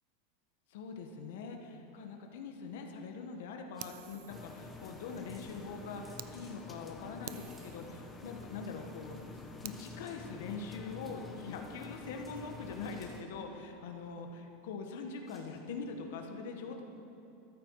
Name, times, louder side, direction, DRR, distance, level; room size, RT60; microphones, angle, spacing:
voice 1, 0.7-9.2 9.6-16.8, left 4 dB, 70° left, 3 dB, 1.5 m, -43 dB
sound 1, 1.8-15.5, equal, 5° right, 2.2 m, -66 dB
Fire, 3.8-6.3 6.8-6.9 7.2-9.8, right 14 dB, 55° right, 0.5 m, -51 dB
sound 2, 4.3-13.2, left 4 dB, 10° left, 0.9 m, -48 dB
14.0 x 13.0 x 4.8 m, 2.8 s
supercardioid pair, 160°, 0 cm